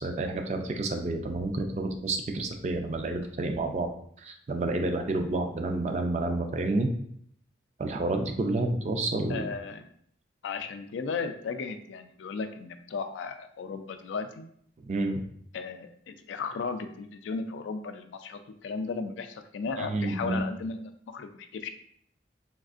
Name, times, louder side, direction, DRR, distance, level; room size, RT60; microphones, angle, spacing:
voice 1, 0.0-3.9 4.2-6.9 7.8-9.5 14.8-15.3 19.8-20.4, right 2 dB, 35° right, 4 dB, 0.3 m, -29 dB
voice 2, 9.3-9.9 10.4-14.5 15.5-21.7, left 4 dB, 85° left, 8 dB, 0.3 m, -35 dB
3.5 x 2.4 x 2.4 m, 0.66 s
head